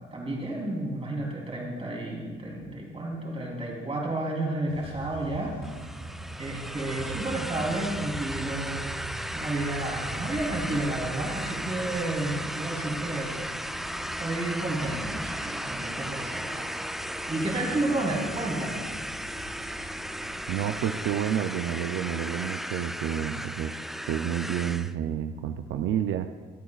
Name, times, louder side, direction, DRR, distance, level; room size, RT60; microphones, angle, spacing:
voice 1, 0.0-5.5 6.4-8.8 9.3-13.3 14.2-16.7 17.3-18.8, right 2 dB, 30° right, -2 dB, 3.4 m, -31 dB
sound 1, 4.7-20.4, right 1 dB, 60° right, 2.9 m, -43 dB
sound 2, 5.6-24.9, equal, ahead, 0.4 m, -36 dB
voice 2, 20.5-23.7 24.1-26.3, right 10 dB, 85° right, 8 dB, 0.5 m, -29 dB
24.0 x 8.4 x 2.4 m, 1.5 s
cardioid pair, 90°, 20 cm